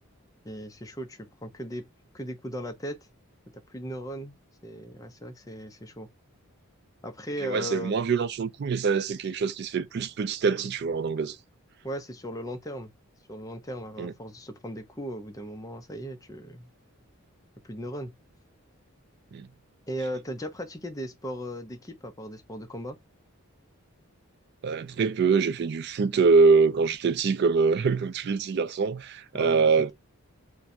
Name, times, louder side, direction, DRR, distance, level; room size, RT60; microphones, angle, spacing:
voice 1, 0.4-1.8 2.1-3.0 3.7-4.4 4.6-6.1 7.0-7.9 11.8-12.9 13.3-16.7 17.6-18.1 19.9-23.0 29.3-29.7, equal, 15° left, 0.4 m, -37 dB
voice 2, 7.4-11.4 14.0-14.1 19.3-19.5 24.6-29.9, right 5 dB, 50° right, 0.3 m, -24 dB
2.5 x 2.2 x 4.0 m
head